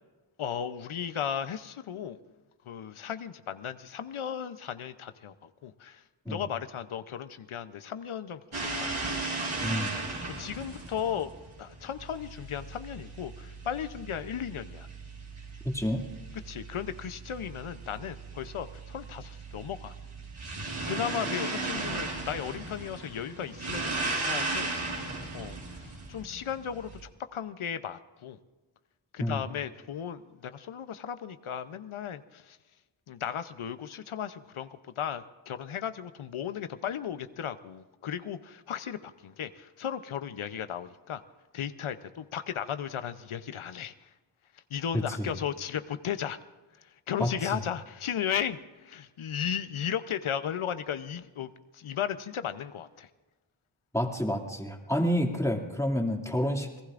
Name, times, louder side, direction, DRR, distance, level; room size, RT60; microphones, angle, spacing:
voice 1, 0.4-2.2 2.7-9.2 10.4-11.3 11.6-14.9 16.4-19.9 20.8-24.7 25.3-25.6 25.8-28.4 29.1-32.6 33.1-41.2 41.5-44.1 44.5-46.4 46.8-53.1, left 8 dB, 80° left, 12 dB, 0.8 m, -35 dB
sound 1, 8.5-27.0, right 3 dB, 70° right, 4.8 m, -37 dB
voice 2, 9.6-10.0 15.6-16.0 29.2-29.4 44.9-45.3 47.2-47.5 53.9-56.8, equal, 5° left, 1 dB, 2.3 m, -29 dB
27.0 x 18.5 x 2.5 m, 1.2 s
cardioid pair, 50°, 49 cm